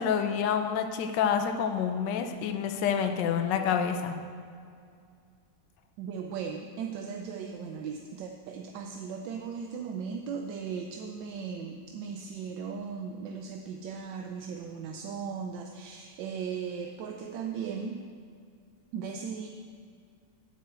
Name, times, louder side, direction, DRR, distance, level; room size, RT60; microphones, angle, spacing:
voice 1, 0.0-4.2, left 7 dB, 75° left, 7 dB, 1.3 m, -28 dB
voice 2, 6.0-18.0 18.9-19.5, right 6 dB, 85° right, 3 dB, 1.4 m, -37 dB
8.2 x 6.1 x 8.0 m, 2.3 s
omnidirectional pair, 2.0 m